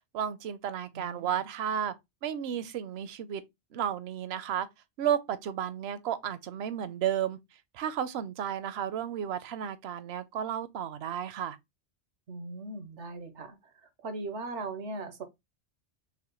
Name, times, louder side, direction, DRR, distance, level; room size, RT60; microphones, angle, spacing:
voice 1, 0.1-1.9 2.2-3.4 3.7-4.7 5.0-7.4 7.7-11.6, right 9 dB, 70° right, 0.8 m, -32 dB
voice 2, 0.9-1.4 12.3-15.2, right 2 dB, 90° right, 1.2 m, -39 dB
5.6 x 2.1 x 3.0 m
omnidirectional pair, 1.2 m